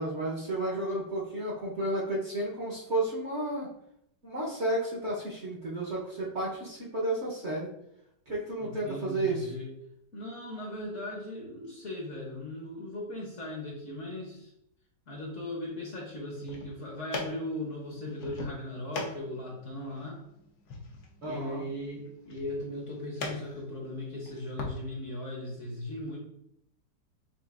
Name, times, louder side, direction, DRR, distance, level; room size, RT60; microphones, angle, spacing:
voice 1, 0.0-3.7 4.2-7.7 8.3-9.5 21.2-21.6, right 1 dB, 45° right, -5 dB, 1.0 m, -32 dB
voice 2, 8.6-9.7 10.1-14.5 15.1-20.2 21.2-26.2, left 1 dB, 50° left, -2 dB, 1.1 m, -38 dB
sound 1, 16.2-24.8, left 3 dB, 70° left, 1.3 m, -42 dB
6.9 x 2.5 x 2.5 m, 0.77 s
omnidirectional pair, 1.9 m